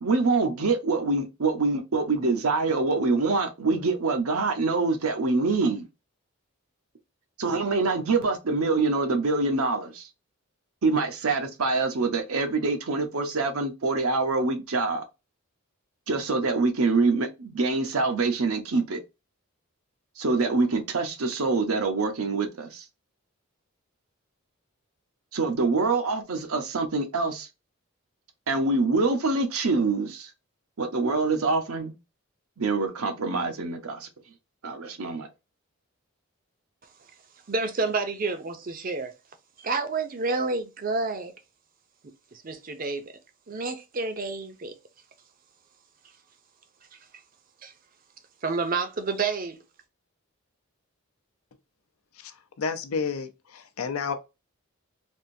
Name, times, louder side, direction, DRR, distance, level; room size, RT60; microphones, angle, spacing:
voice 1, 0.0-5.9 7.4-10.1 10.8-15.0 16.1-19.0 20.2-22.8 25.3-27.5 28.5-30.3 30.8-31.9 32.6-34.1 34.6-35.3, right 3 dB, 80° right, 0.7 m, -25 dB
voice 2, 37.5-39.1 39.6-41.3 42.3-43.1 43.5-44.8 46.9-47.0 47.6-47.7 48.4-49.6, right 3 dB, 40° right, 0.5 m, -29 dB
voice 3, 52.6-54.1, left 5 dB, 80° left, 0.6 m, -30 dB
3.5 x 2.5 x 2.6 m
head